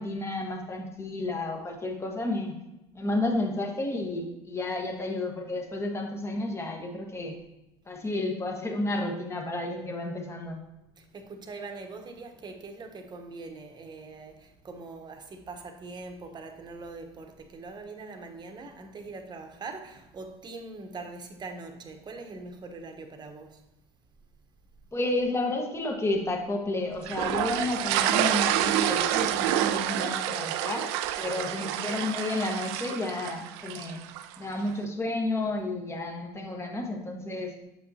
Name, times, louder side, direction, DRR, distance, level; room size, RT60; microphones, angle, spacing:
voice 1, 0.0-2.5 2.9-7.3 7.9-10.6 24.9-30.9 31.2-34.0 34.4-37.5, left 2 dB, 20° left, 1.3 m, -31 dB
voice 2, 11.0-23.6 31.4-31.5, right 3 dB, 35° right, 1.0 m, -42 dB
sound 1, 27.1-34.3, right 12 dB, 80° right, 0.4 m, -28 dB
7.3 x 5.5 x 2.8 m
supercardioid pair, 90°, 14 cm